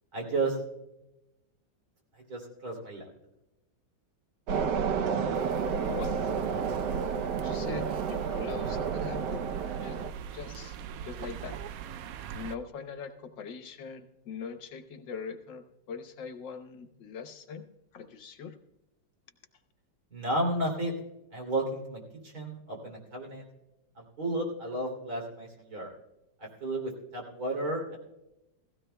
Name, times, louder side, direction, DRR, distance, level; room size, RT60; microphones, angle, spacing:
voice 1, 0.1-0.6 2.3-3.1 20.1-20.9 21.3-23.4 24.0-25.9 26.4-28.0, right 1 dB, 50° right, 0 dB, 3.4 m, -33 dB
sound 1, 4.5-10.1, right 6 dB, 70° right, 1.3 m, -31 dB
sound 2, 5.3-12.6, right 7 dB, 90° right, 0.7 m, -41 dB
voice 2, 5.7-6.3 7.4-9.4 9.8-10.0 10.3-10.8 11.0-11.6 12.3-17.7 17.9-18.6, left 6 dB, 70° left, 8 dB, 1.6 m, -42 dB
17.0 x 16.0 x 2.2 m, 0.91 s
omnidirectional pair, 2.1 m